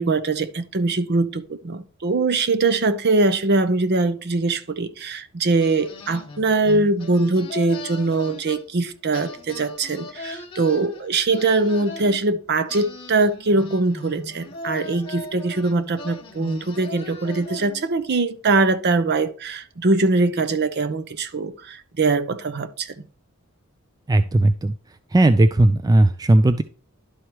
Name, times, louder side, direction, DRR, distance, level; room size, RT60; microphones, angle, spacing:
voice 1, 0.0-22.9, right 3 dB, 50° right, 0.7 m, -22 dB
sound 1, 5.6-8.9 9.1-12.2 12.7-18.0, left 2 dB, 25° left, 1.2 m, -38 dB
voice 2, 24.1-24.7 25.1-26.6, right 1 dB, 20° right, 0.3 m, -16 dB
11.5 x 4.7 x 2.9 m
head